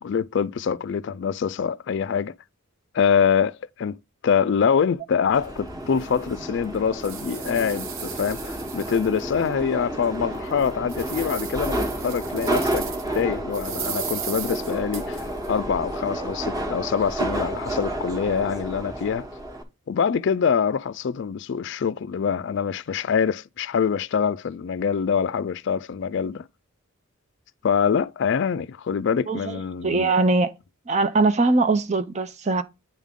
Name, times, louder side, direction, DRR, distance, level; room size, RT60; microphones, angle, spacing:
voice 1, 0.0-2.3 2.9-4.0 4.2-12.9 13.1-19.3 19.9-26.5 27.6-30.1, left 7 dB, 55° left, 0.3 m, -25 dB
Subway metro underground, 5.3-19.6, right 1 dB, 15° right, 1.1 m, -31 dB
sound 1, 5.4-5.5 6.0-6.1 6.6-9.5 9.9-10.0 10.5-13.2 13.5-15.5, right 8 dB, 70° right, 1.1 m, -36 dB
voice 2, 29.3-30.5 30.9-32.6, right 3 dB, 30° right, 0.6 m, -21 dB
9.1 x 3.6 x 3.5 m
head